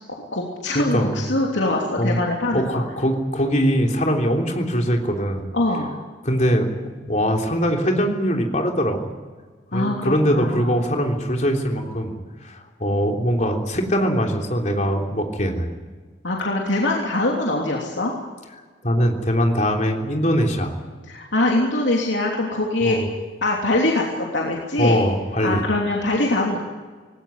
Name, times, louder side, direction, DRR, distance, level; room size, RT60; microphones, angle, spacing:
voice 1, 0.0-2.8 5.5-5.9 9.7-10.7 16.2-18.1 21.0-23.0 23.4-24.0 24.3-25.0 25.4-26.6, left 2 dB, 80° left, -1 dB, 3.1 m, -23 dB
voice 2, 0.7-1.2 2.0-2.2 2.5-5.5 6.2-9.1 9.7-12.1 12.4-15.7 18.8-20.7 22.8-23.0 24.8-25.6, equal, 40° left, 2 dB, 3.3 m, -22 dB
19.5 x 17.5 x 9.4 m, 1.4 s
head